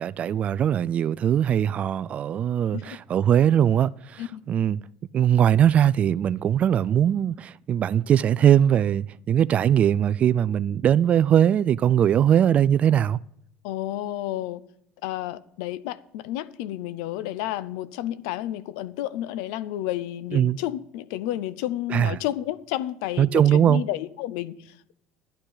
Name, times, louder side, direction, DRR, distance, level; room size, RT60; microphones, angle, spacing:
voice 1, 0.0-4.8 5.1-13.2 20.3-20.6 21.9-22.2 23.2-23.8, right 9 dB, 40° right, 0.3 m, -21 dB
voice 2, 13.6-14.6 15.0-24.9, left 13 dB, 85° left, 0.6 m, -31 dB
13.0 x 11.5 x 4.0 m
cardioid pair, 120°, 4 cm